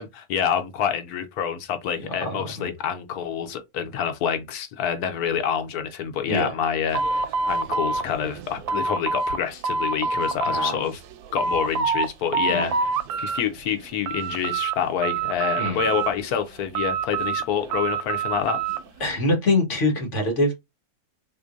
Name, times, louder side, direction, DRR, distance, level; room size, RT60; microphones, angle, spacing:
voice 1, 0.0-11.0 11.3-12.9 13.2-18.6, left 8 dB, 80° left, 1.2 m, -27 dB
voice 2, 1.9-2.7 6.2-6.5 10.4-10.9 12.5-12.7 15.6-15.9 19.0-20.5, left 2 dB, 55° left, 1.6 m, -25 dB
sound 1, 6.9-9.4 9.6-10.7 11.1-12.1 12.3-13.4 13.8-14.7 15.0-16.3 16.7-18.8, right 4 dB, 90° right, 1.1 m, -26 dB
3.7 x 3.0 x 2.5 m
omnidirectional pair, 1.6 m